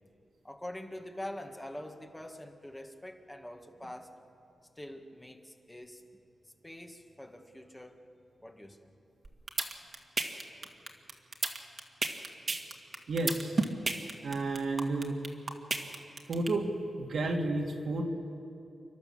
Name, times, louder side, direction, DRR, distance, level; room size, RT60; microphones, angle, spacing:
voice 1, 0.4-4.1 4.8-6.0 6.4-8.0 8.4-8.9 10.5-10.7, left 1 dB, 15° left, 4 dB, 2.0 m, -45 dB
sound 1, 9.2-16.5, right 3 dB, 50° right, 2.0 m, -31 dB
voice 2, 13.1-13.6 14.2-15.2 16.3-16.7 17.0-18.0, right 2 dB, 75° right, 1 dB, 2.4 m, -31 dB
29.5 x 12.0 x 7.3 m, 2.6 s
cardioid pair, 65°, 0 cm